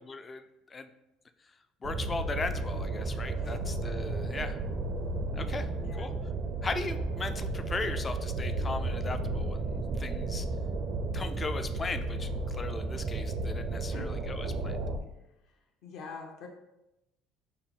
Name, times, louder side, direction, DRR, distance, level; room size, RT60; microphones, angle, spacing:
voice 1, 0.1-0.9 1.8-4.6 5.3-5.7 6.0-6.1 6.6-10.5 11.1-14.8, left 3 dB, 25° left, 9 dB, 0.3 m, -38 dB
sound 1, 1.8-15.0, right 2 dB, 45° right, 0.4 m, -33 dB
voice 2, 5.8-6.1 13.9-14.1 15.8-16.5, left 4 dB, 65° left, 1 dB, 1.0 m, -44 dB
5.5 x 2.1 x 4.0 m, 0.89 s
cardioid pair, 110°, 0 cm